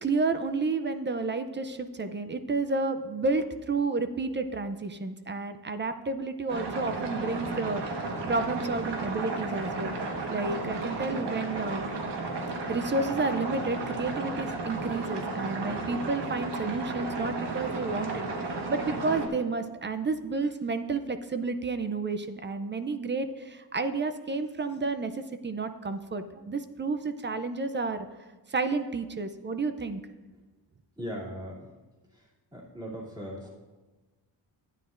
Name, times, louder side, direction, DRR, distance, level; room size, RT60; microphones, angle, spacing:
voice 1, 0.0-9.9 10.3-11.9 12.7-28.1 28.5-30.0, right 3 dB, 25° right, 10 dB, 0.5 m, -31 dB
sound 1, 6.5-19.3, right 3 dB, 70° right, 1.4 m, -33 dB
voice 2, 31.0-31.7 32.1-33.5, equal, 10° right, -5 dB, 2.7 m, -39 dB
13.0 x 9.7 x 2.5 m, 1.2 s
wide cardioid pair, 120°, 43 cm